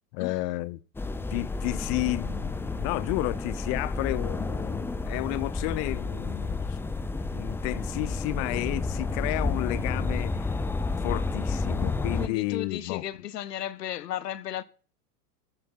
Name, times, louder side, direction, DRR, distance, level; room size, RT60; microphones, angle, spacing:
voice 1, 0.1-0.8 1.3-6.8 7.3-10.6 11.0-13.0, left 20 dB, 45° left, 0.7 m, -32 dB
sound 1, 0.9-12.3, left 3 dB, 5° left, 0.5 m, -31 dB
voice 2, 12.2-14.6, left 11 dB, 85° left, 1.0 m, -34 dB
14.0 x 6.9 x 5.7 m
hypercardioid pair, 115°, 47 cm